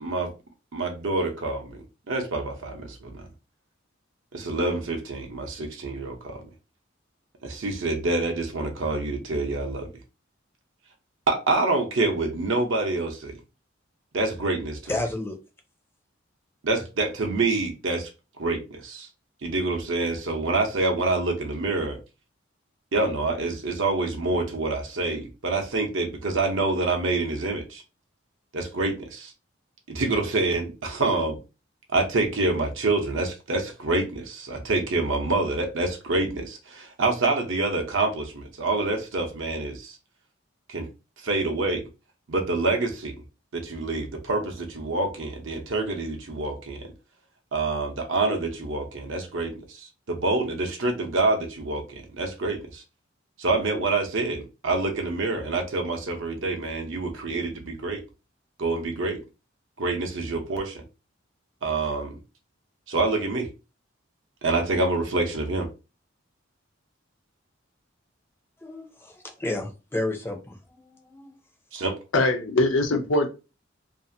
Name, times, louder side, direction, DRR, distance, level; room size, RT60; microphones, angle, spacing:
voice 1, 0.0-0.3 0.7-1.8 2.1-3.2 4.3-6.4 7.4-9.9 11.3-13.3 14.1-14.8 16.6-18.0 18.4-19.1 19.4-22.0 22.9-27.8 28.5-29.3 29.9-31.4 31.9-39.9 40.7-40.9 41.2-41.8 42.3-43.2 43.5-46.9 47.5-52.8 53.4-58.0 58.6-59.2 59.8-60.8 61.6-62.2 62.9-63.5 64.4-65.7 71.7-71.9, right 3 dB, 70° right, 0.8 m, -26 dB
voice 2, 14.9-15.4 68.6-71.3, left 2 dB, 10° left, 0.5 m, -31 dB
voice 3, 72.1-73.3, left 2 dB, 70° left, 0.6 m, -22 dB
2.7 x 2.4 x 2.6 m
head